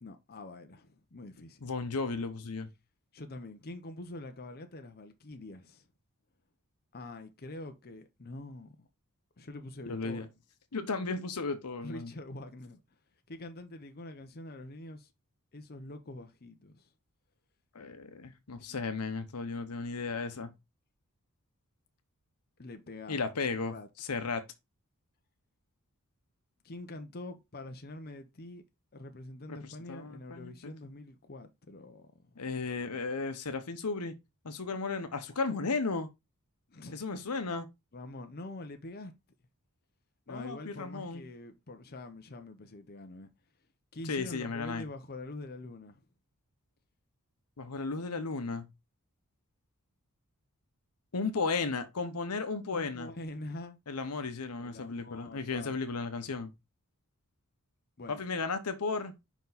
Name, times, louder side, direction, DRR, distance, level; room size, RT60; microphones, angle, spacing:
voice 1, 0.0-1.6 3.1-5.9 6.9-8.9 9.4-10.3 11.8-12.8 13.3-15.1 15.5-16.9 22.6-23.2 23.5-23.9 26.6-28.6 28.9-32.5 36.7-37.0 37.9-39.1 40.3-43.3 43.9-46.0 52.7-53.8 54.6-55.8 58.0-58.2, left 2 dB, 45° left, 0.8 m, -45 dB
voice 2, 1.6-2.7 9.9-10.3 10.7-12.1 17.7-20.5 23.1-24.4 29.5-30.7 32.4-34.1 34.4-36.1 36.9-37.7 40.3-41.2 44.1-44.8 47.6-48.7 51.1-53.1 53.9-56.5 58.1-59.1, left 4 dB, 85° left, 0.9 m, -34 dB
5.4 x 4.6 x 4.0 m
head